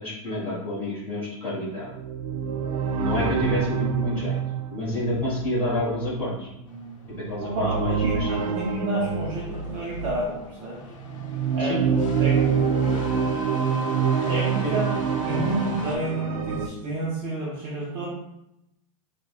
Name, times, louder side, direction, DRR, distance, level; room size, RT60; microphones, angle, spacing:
voice 1, 0.0-1.9 2.9-4.4 4.7-6.5 7.2-8.4 11.6-11.8 14.6-14.7, left 1 dB, 10° left, -8 dB, 1.3 m, -29 dB
sound 1, 1.9-10.4 11.0-16.7, right 6 dB, 85° right, 0.4 m, -27 dB
sound 2, 6.7-16.0, left 2 dB, 75° left, 0.7 m, -39 dB
voice 2, 7.4-10.8 11.5-13.0 14.3-14.9 15.2-18.1, right 1 dB, 30° right, -5 dB, 0.6 m, -30 dB
4.9 x 2.1 x 2.3 m, 0.85 s
supercardioid pair, 170°, 17 cm